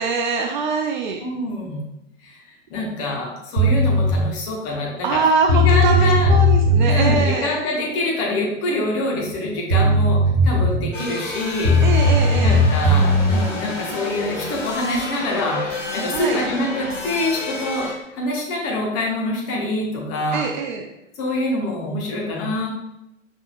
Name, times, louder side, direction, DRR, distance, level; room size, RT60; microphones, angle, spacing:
voice 1, 0.0-1.2 5.0-7.5 11.8-12.6 16.1-16.4 20.3-20.8, right 4 dB, 40° right, 3 dB, 0.4 m, -23 dB
voice 2, 1.2-1.8 2.2-2.4 2.7-5.2 5.5-6.3 6.9-12.0 12.4-17.9 18.1-20.5 21.2-22.7, left 1 dB, 35° left, -2 dB, 1.2 m, -25 dB
sound 1, 3.6-4.1 5.1-5.2 5.5-7.2 9.3-9.4 9.7-10.9 11.6-13.3, left 1 dB, 70° right, 1.5 m, -16 dB
sound 2, 10.9-17.9, left 2 dB, 65° left, 1.2 m, -30 dB
4.8 x 3.5 x 2.4 m, 0.86 s
figure-of-eight pair, 95°, 39 cm